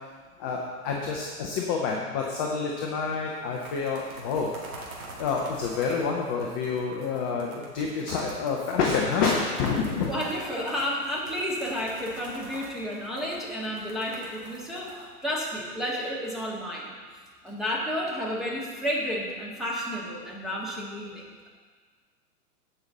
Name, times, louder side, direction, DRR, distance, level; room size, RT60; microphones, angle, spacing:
voice 1, 0.4-4.5 5.2-10.1 15.0-15.1, left 5 dB, 15° left, -1 dB, 0.4 m, -28 dB
sound 1, 2.2-2.7 2.9-3.0 3.4-15.9, right 2 dB, 60° right, 2.2 m, -46 dB
voice 2, 10.1-14.9 15.2-16.9 17.4-21.5, equal, ahead, -4 dB, 1.6 m, -31 dB
15.5 x 5.4 x 3.9 m, 1.5 s
figure-of-eight pair, 110°, 46 cm